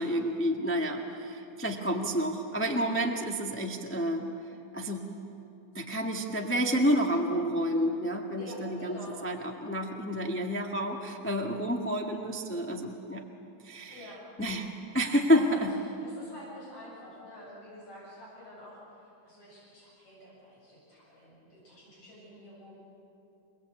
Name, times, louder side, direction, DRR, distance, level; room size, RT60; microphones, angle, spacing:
voice 1, 0.0-4.3 4.7-5.1 5.7-13.2 13.6-14.1 14.4-14.7 14.9-15.7, equal, 10° left, 1 dB, 0.7 m, -29 dB
voice 2, 8.4-9.2 13.9-14.2 15.2-15.7 16.0-22.8, equal, 65° left, -6 dB, 9.0 m, -48 dB
28.5 x 20.5 x 8.4 m, 2.8 s
omnidirectional pair, 3.4 m